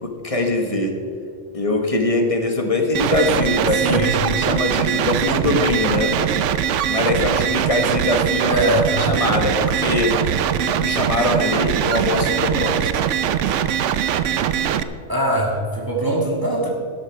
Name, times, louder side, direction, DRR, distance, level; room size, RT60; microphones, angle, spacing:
voice 1, 0.0-1.0 1.5-6.1 6.9-10.1 10.8-13.0, left 2 dB, 30° left, 4 dB, 1.4 m, -22 dB
sound 1, 2.9-14.8, right 9 dB, 75° right, 0.9 m, -21 dB
voice 2, 3.7-4.0 8.5-9.3 15.1-16.7, right 1 dB, 15° right, -1 dB, 1.9 m, -22 dB
12.5 x 12.0 x 4.6 m, 2.3 s
omnidirectional pair, 1.3 m